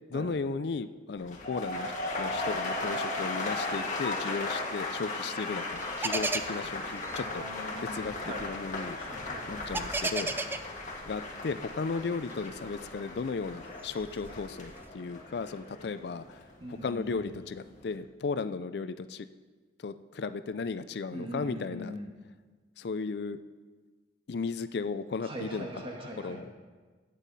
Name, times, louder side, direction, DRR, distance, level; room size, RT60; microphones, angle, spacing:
voice 1, 0.1-1.9 2.2-7.4 7.8-8.2 8.4-9.0 9.5-10.3 11.1-16.4 16.7-19.3 19.8-22.0 22.8-23.4 24.3-25.8 26.2-26.5, left 4 dB, 60° left, 13 dB, 0.4 m, -35 dB
sound 1, 1.2-17.2 17.5-18.0, left 2 dB, 40° left, 1.9 m, -37 dB
sound 2, 5.7-11.7 12.2-14.9, right 2 dB, 10° right, 0.4 m, -37 dB
voice 2, 7.1-8.4 9.0-9.8 16.6-17.2 21.1-22.1 25.2-26.4, equal, 30° right, 0 dB, 1.8 m, -41 dB
15.0 x 9.1 x 4.1 m, 1.4 s
head